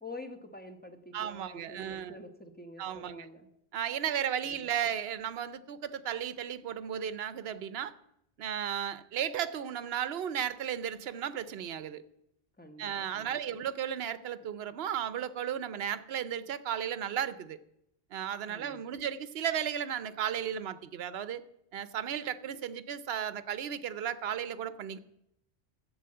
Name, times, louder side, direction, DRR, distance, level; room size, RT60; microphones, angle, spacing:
voice 1, 0.0-3.5 4.4-4.7 12.6-13.5 18.5-19.0, left 2 dB, 10° left, 1.1 m, -48 dB
voice 2, 1.1-2.2 2.8-3.3 3.7-7.9 8.4-12.0 12.8-17.6 18.1-21.4 21.7-25.0, right 9 dB, 65° right, 0.9 m, -34 dB
11.0 x 7.7 x 7.7 m
omnidirectional pair, 1.1 m